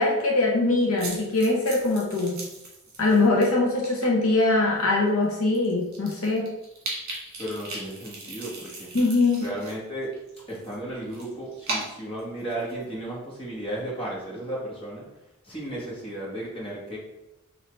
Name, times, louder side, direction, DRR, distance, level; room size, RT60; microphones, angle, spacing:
voice 1, 0.0-2.4 3.0-6.5 8.9-9.5, left 2 dB, 75° left, -2 dB, 0.9 m, -22 dB
sound 1, 1.0-3.4 3.8-4.1 4.8-4.9 5.2-5.3 5.5-9.7 10.0-12.8, right 2 dB, 45° right, 1.5 m, -37 dB
voice 2, 7.4-8.9 9.4-10.1 10.5-15.0 15.4-17.0, right 1 dB, 25° left, -5 dB, 1.5 m, -34 dB
5.6 x 2.8 x 3.2 m, 0.93 s
head